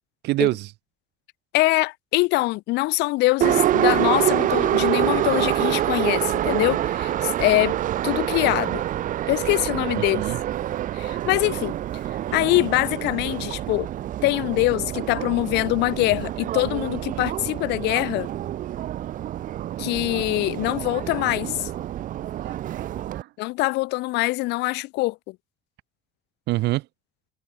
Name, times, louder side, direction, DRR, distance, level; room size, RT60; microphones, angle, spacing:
voice 1, 0.2-0.7 9.9-10.4 22.4-23.3 26.5-26.8, right 18 dB, 85° right, 1.5 m, -26 dB
voice 2, 1.5-7.7 8.0-8.8 9.3-10.3 10.9-11.8 12.3-13.9 14.2-18.3 19.8-21.7 23.4-25.4, left 21 dB, 85° left, 0.6 m, -23 dB
Subway metro underground, 3.4-23.2, right 12 dB, 50° right, 0.5 m, -26 dB
cardioid pair, 110°, 17 cm